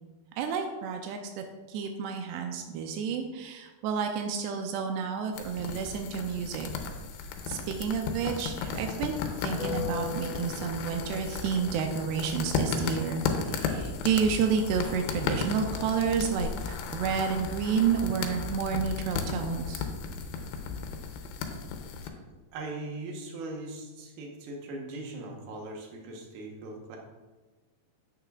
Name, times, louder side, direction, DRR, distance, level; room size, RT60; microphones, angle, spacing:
voice 1, 0.4-6.7 7.5-19.9, right 6 dB, 90° right, 4 dB, 2.7 m, -30 dB
sound 1, 5.3-22.1, left 5 dB, 90° left, 2.9 m, -35 dB
Harp, 9.6-16.1 17.7-18.7, left 3 dB, ahead, 0.9 m, -42 dB
sound 2, 13.7-21.1, left 4 dB, 70° left, 2.7 m, -42 dB
voice 2, 22.5-27.0, right 2 dB, 75° right, 1 dB, 3.0 m, -40 dB
9.7 x 8.9 x 2.4 m, 1.2 s
omnidirectional pair, 4.6 m